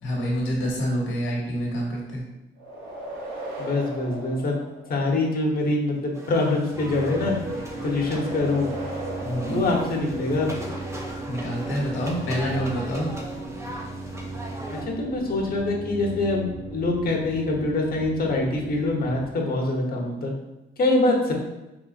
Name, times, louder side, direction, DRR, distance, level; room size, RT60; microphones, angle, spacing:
voice 1, 0.0-2.2 9.2-9.7 11.2-13.1, equal, 80° left, -2 dB, 1.4 m, -27 dB
sound 1, 2.6-5.3 7.9-10.6, right 1 dB, 90° right, 1.0 m, -37 dB
voice 2, 3.6-4.6 4.9-7.4 7.8-8.7 9.5-10.6 14.7-20.3 20.8-21.3, left 2 dB, 50° left, 0 dB, 1.1 m, -24 dB
sound 2, 6.1-14.8, equal, 15° right, 0.7 m, -40 dB
sound 3, 6.7-19.3, right 2 dB, 50° right, 1.5 m, -36 dB
4.3 x 4.0 x 2.5 m, 0.97 s
cardioid pair, 90°, 20 cm